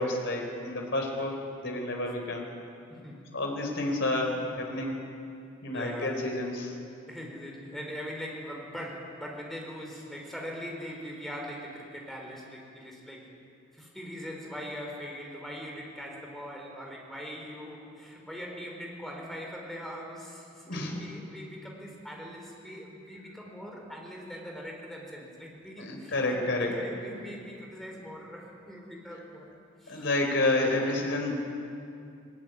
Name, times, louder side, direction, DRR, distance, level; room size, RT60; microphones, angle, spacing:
voice 1, 0.0-2.4 3.3-5.0 5.6-6.8 20.6-21.0 25.8-26.7 29.9-31.3, left 2 dB, 65° left, 1 dB, 4.1 m, -29 dB
voice 2, 2.9-3.3 5.7-6.2 7.1-13.3 13.7-29.5 29.8-30.1 31.1-31.2, equal, ahead, -1 dB, 4.6 m, -41 dB
20.0 x 19.5 x 9.7 m, 2.5 s
head